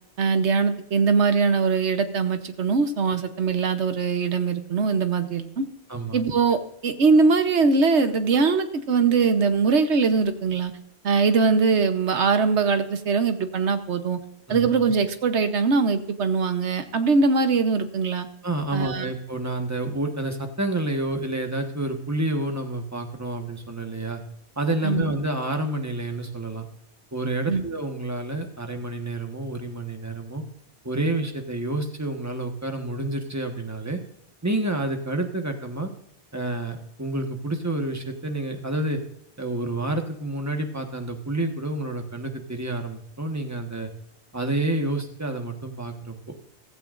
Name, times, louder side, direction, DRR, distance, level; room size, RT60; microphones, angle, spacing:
voice 1, 0.2-5.7 6.1-10.7 11.0-14.2 14.5-18.3 18.7-19.1 24.8-25.1 27.5-27.7, right 4 dB, 80° right, 9 dB, 1.3 m, -22 dB
voice 2, 5.9-6.2 14.5-14.7 18.4-24.2 24.6-26.6 27.1-30.4 30.8-34.0 34.4-35.9 36.3-39.0 39.4-43.9 44.3-46.1, right 2 dB, 15° right, 4 dB, 1.3 m, -29 dB
15.5 x 14.5 x 2.6 m, 0.78 s
omnidirectional pair, 1.2 m